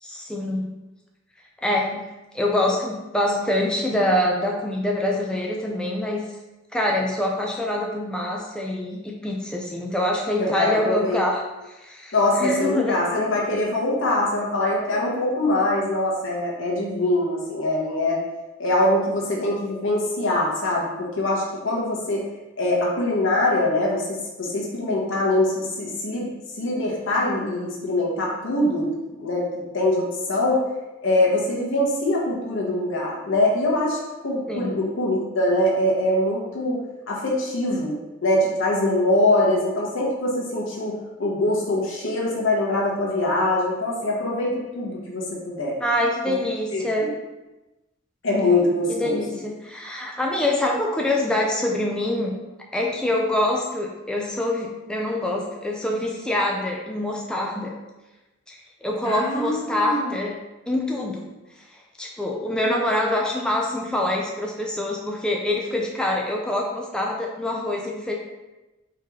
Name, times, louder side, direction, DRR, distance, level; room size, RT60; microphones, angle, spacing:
voice 1, 0.0-0.7 1.6-2.1 2.3-6.3 6.7-13.0 34.5-34.8 45.8-47.1 48.9-52.3 52.7-57.7 58.5-60.4 60.7-61.3 61.7-68.2, left 1 dB, 5° left, -1 dB, 0.3 m, -25 dB
voice 2, 10.4-11.2 12.1-18.2 18.6-22.2 22.6-26.3 26.6-28.9 29.2-30.6 31.0-36.8 37.1-38.0 38.2-45.8 46.7-47.1 48.2-49.2 59.0-60.1, left 1 dB, 65° left, -4 dB, 1.1 m, -23 dB
4.6 x 3.0 x 3.5 m, 1.1 s
head